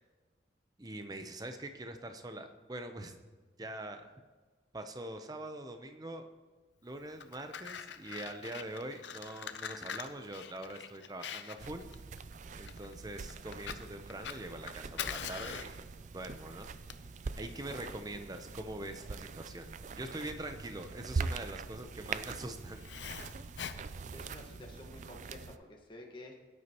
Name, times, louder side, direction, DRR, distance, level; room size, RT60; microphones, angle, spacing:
voice 1, 0.8-3.1 3.6-4.1 4.7-6.3 6.8-11.9 12.6-15.8 16.1-16.7 17.4-19.7 20.0-22.8, right 1 dB, 20° right, 7 dB, 0.7 m, -43 dB
Fire, 7.0-24.7, left 7 dB, 85° left, 0.6 m, -45 dB
sound 1, 11.6-25.6, right 4 dB, 40° right, 0.4 m, -43 dB
voice 2, 24.1-26.3, left 1 dB, 30° left, 0 dB, 1.4 m, -50 dB
17.5 x 9.6 x 3.0 m, 1.4 s
head